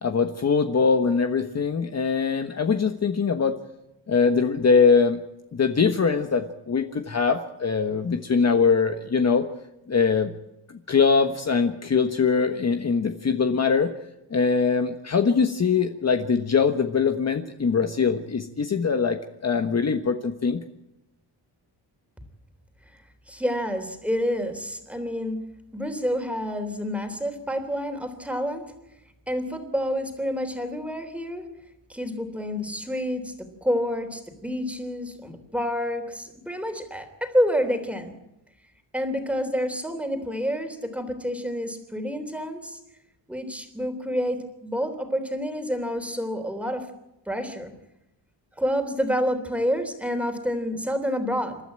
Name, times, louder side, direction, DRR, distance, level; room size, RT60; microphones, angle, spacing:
voice 1, 0.0-3.5 4.1-5.2 5.5-9.4 9.9-10.3 10.9-13.9 14.3-20.6, left 5 dB, 35° left, 6 dB, 1.3 m, -22 dB
voice 2, 23.3-25.4 25.7-28.6 29.3-31.4 31.9-38.1 38.9-42.8 43.3-46.9 47.3-47.7 48.6-51.6, equal, 5° right, 7 dB, 3.4 m, -28 dB
28.0 x 12.5 x 8.9 m, 0.91 s
cardioid pair, 115°, 43 cm